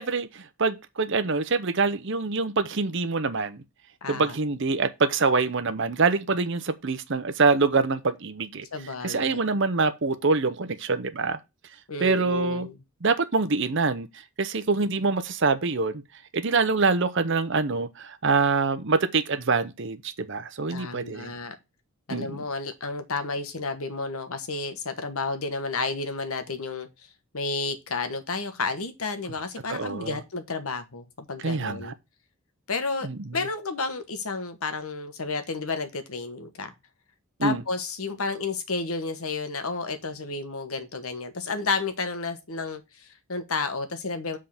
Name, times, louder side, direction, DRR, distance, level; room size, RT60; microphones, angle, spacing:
voice 1, 0.0-3.6 4.1-8.7 9.0-11.4 12.0-12.7 13.0-14.1 14.4-16.0 16.3-21.3 22.1-22.4 29.7-30.2 31.4-31.9 33.0-33.4 37.4-37.6, right 4 dB, 55° right, 0.7 m, -25 dB
voice 2, 4.0-4.4 8.7-9.4 11.9-12.8 20.7-21.5 22.1-26.9 27.3-31.9 32.7-33.1 33.3-36.7 37.4-44.4, left 4 dB, 70° left, 1.2 m, -31 dB
7.5 x 3.7 x 5.8 m
head